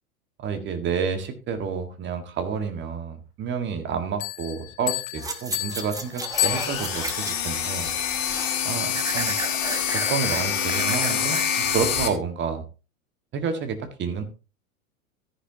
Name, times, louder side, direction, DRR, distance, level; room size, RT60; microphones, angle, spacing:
voice 1, 0.4-7.9 8.6-9.4 9.9-12.6 13.3-14.2, right 6 dB, 25° right, 8 dB, 1.7 m, -29 dB
sound 1, 4.2-7.2, left 19 dB, 25° left, 0.4 m, -30 dB
sound 2, 5.2-7.5 7.9-8.6 8.9-11.8 12.2-12.3, right 3 dB, 10° right, 1.2 m, -33 dB
sound 3, 6.3-12.1, left 8 dB, 60° left, 2.4 m, -26 dB
14.0 x 10.0 x 2.8 m, 0.32 s
figure-of-eight pair, 90°, 42 cm